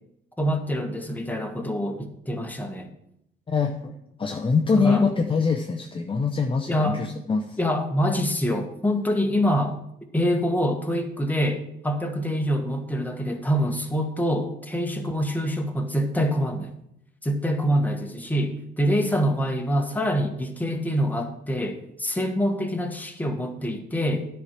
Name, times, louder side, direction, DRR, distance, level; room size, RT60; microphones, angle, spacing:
voice 1, 0.4-2.9 4.8-5.0 6.7-7.0 7.6-9.8 10.1-16.7 17.2-24.3, equal, 10° left, 4 dB, 1.4 m, -25 dB
voice 2, 3.5-7.6, left 5 dB, 25° left, 3 dB, 0.7 m, -24 dB
9.7 x 4.5 x 7.3 m, 0.77 s
cardioid pair, 90°, 20 cm